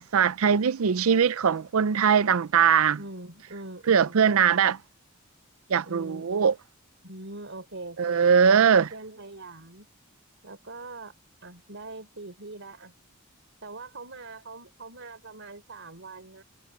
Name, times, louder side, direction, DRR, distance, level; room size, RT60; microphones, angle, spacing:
voice 1, 0.0-3.0 3.9-4.8 5.7-6.5 8.0-8.9, right 7 dB, 80° right, 0.5 m, -21 dB
voice 2, 2.9-4.5 5.8-6.4 7.0-8.3 8.7-9.9 10.4-11.1 11.4-12.9 13.6-16.4, right 2 dB, 60° right, 4.0 m, -42 dB
head